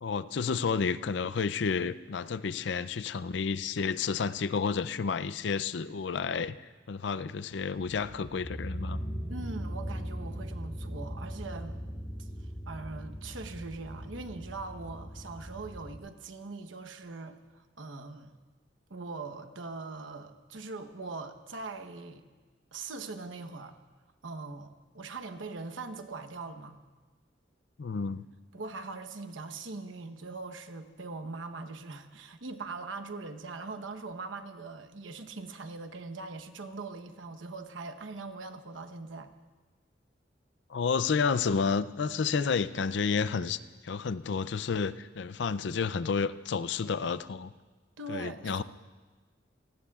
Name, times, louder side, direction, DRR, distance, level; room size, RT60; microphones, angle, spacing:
voice 1, 0.0-6.6 6.9-9.0 27.8-28.2 40.7-47.5 48.1-48.6, left 5 dB, 70° left, 14 dB, 0.5 m, -30 dB
sound 1, 7.7-16.0, equal, 25° left, 6.2 m, -39 dB
voice 2, 9.3-11.8 12.2-12.3 12.7-18.3 18.9-22.2 22.7-23.8 24.2-26.8 28.5-39.3 48.0-48.6, right 3 dB, 85° right, 8 dB, 1.0 m, -41 dB
26.5 x 18.5 x 2.4 m, 1.3 s
head